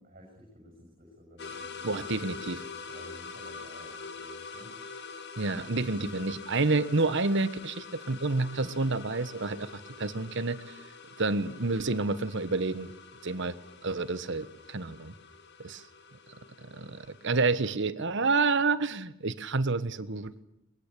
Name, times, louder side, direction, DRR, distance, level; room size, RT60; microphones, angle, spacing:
voice 1, 0.0-2.5 2.9-4.7, equal, 40° right, 0 dB, 7.1 m, -53 dB
sound 1, 1.4-17.7, left 5 dB, 55° left, 1.9 m, -45 dB
voice 2, 1.8-2.6 5.4-9.7 10.0-10.8 11.2-12.9 13.2-13.5 13.8-15.1 15.6-15.8 16.6-20.4, right 3 dB, 60° right, 14 dB, 1.2 m, -29 dB
22.0 x 21.5 x 8.4 m, 0.80 s
head